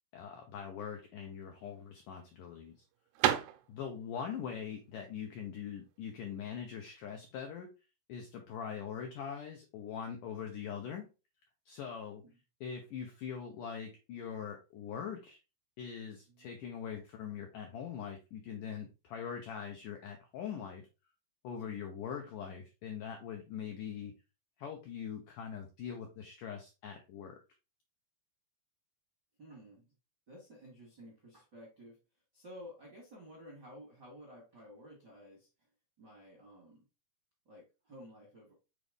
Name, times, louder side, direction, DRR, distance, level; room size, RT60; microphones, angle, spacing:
voice 1, 0.1-2.7 3.7-7.7 8.1-11.1 11.7-12.2 12.6-15.4 15.8-20.8 21.4-24.1 24.6-27.4, left 7 dB, 90° left, 3 dB, 1.8 m, -42 dB
sound 1, 1.3-7.0, right 11 dB, 80° right, 2.5 m, -36 dB
voice 2, 29.4-29.9 30.3-32.0 32.3-35.5 36.0-36.8 37.4-38.5, equal, 60° right, -3 dB, 1.1 m, -53 dB
6.8 x 4.0 x 3.5 m, 0.29 s
omnidirectional pair, 4.8 m